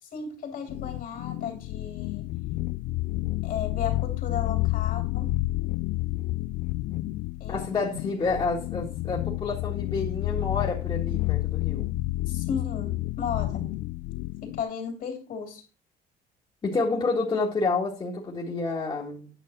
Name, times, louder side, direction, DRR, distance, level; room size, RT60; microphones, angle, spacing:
voice 1, 0.0-2.3 3.4-5.4 7.4-7.6 12.3-13.7 14.4-15.6, left 7 dB, 60° left, 5 dB, 2.9 m, -35 dB
sound 1, 0.7-14.6, left 19 dB, 80° left, 0.5 m, -30 dB
voice 2, 7.5-11.8 16.6-19.3, left 3 dB, 30° left, -2 dB, 1.7 m, -29 dB
9.4 x 5.8 x 4.3 m, 0.35 s
cardioid pair, 110°, 17 cm